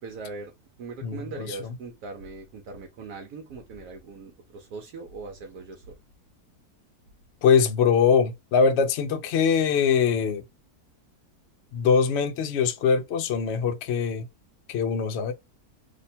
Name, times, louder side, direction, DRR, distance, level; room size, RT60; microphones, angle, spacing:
voice 1, 0.0-0.5 0.8-5.9, right 4 dB, 80° right, 1.1 m, -40 dB
voice 2, 1.0-1.5 7.4-10.4 11.7-14.2 14.7-15.3, left 6 dB, 65° left, 0.6 m, -22 dB
2.8 x 2.2 x 4.1 m
omnidirectional pair, 1.6 m